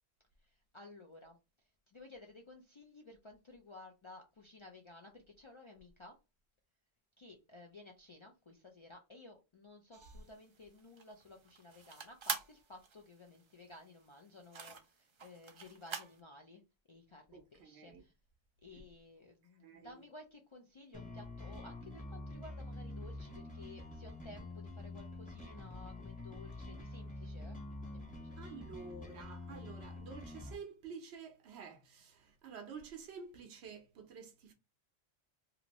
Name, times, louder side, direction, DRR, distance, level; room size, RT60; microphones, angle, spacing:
voice 1, 0.4-1.4 1.9-6.2 7.2-16.6 16.9-18.1 18.6-27.6 27.9-28.4, left 2 dB, 55° left, 0.3 m, -55 dB
sound 1, 9.9-16.2, right 5 dB, 50° right, 0.3 m, -45 dB
voice 2, 17.3-18.0 19.6-20.0 28.4-34.5, right 5 dB, 75° right, 1.0 m, -50 dB
sound 2, 20.9-30.5, left 2 dB, 10° left, 0.7 m, -47 dB
2.9 x 2.5 x 2.9 m
omnidirectional pair, 1.1 m